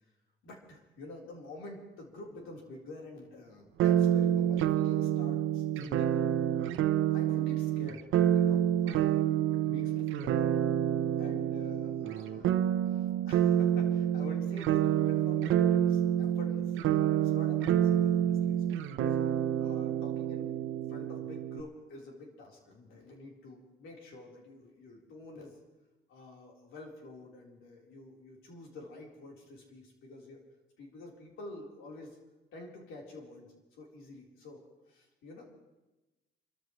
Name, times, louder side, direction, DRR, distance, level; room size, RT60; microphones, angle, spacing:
voice 1, 0.4-6.4 7.1-10.6 11.1-12.6 12.9-19.2 19.6-20.5 20.9-25.6 26.1-30.4 30.8-32.2 32.5-34.6 34.9-35.4, left 2 dB, 85° left, -1 dB, 3.9 m, -48 dB
sound 1, 3.8-21.6, right 10 dB, 90° right, 0.8 m, -28 dB
28.0 x 14.0 x 3.1 m, 1.1 s
cardioid pair, 90°, 20 cm